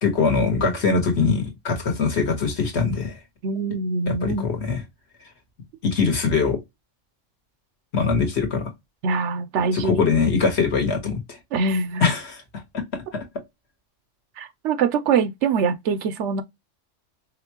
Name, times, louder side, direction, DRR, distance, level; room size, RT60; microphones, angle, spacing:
voice 1, 0.0-3.2 4.1-4.8 5.8-6.6 7.9-8.7 9.7-11.4 12.0-12.4 13.1-13.2, left 4 dB, 60° left, 1.5 m, -22 dB
voice 2, 3.4-4.5 9.0-10.0 11.5-12.0 14.4-16.4, right 5 dB, 70° right, 0.9 m, -23 dB
5.1 x 2.3 x 2.8 m
omnidirectional pair, 1.3 m